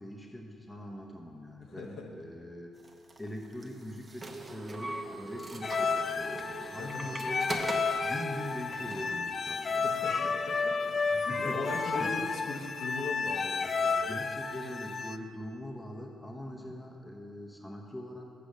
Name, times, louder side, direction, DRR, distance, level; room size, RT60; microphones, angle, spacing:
voice 1, 0.0-2.8 3.2-7.6 8.0-10.1 11.1-11.6 12.0-12.1 14.0-18.3, left 1 dB, 10° left, 1 dB, 0.8 m, -42 dB
voice 2, 1.6-2.1 6.8-7.0 9.7-14.1 16.4-16.7, left 2 dB, 65° left, 0 dB, 1.2 m, -40 dB
sound 1, 2.8-9.2, right 2 dB, 25° right, 0.8 m, -41 dB
sound 2, 5.6-15.2, left 4 dB, 40° left, 0.3 m, -32 dB
6.8 x 6.6 x 6.4 m, 2.4 s
cardioid pair, 90°, 0 cm